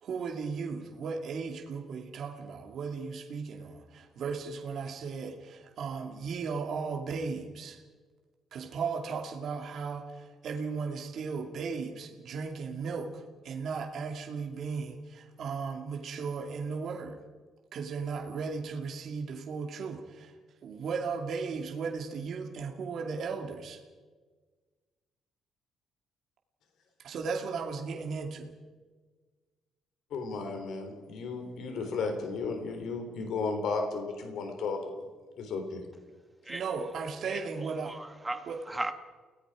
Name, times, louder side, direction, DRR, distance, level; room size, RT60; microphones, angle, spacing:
voice 1, 0.0-7.8 8.5-17.2 17.7-20.3 20.6-23.8 27.0-28.5 36.5-38.0 38.5-38.6, right 5 dB, 50° right, 2.4 m, -36 dB
voice 2, 30.1-35.0 35.4-35.8, left 4 dB, 65° left, 3.7 m, -34 dB
voice 3, 37.3-38.9, right 2 dB, 10° right, 1.3 m, -37 dB
30.0 x 18.0 x 5.0 m
cardioid pair, 170°, 0 cm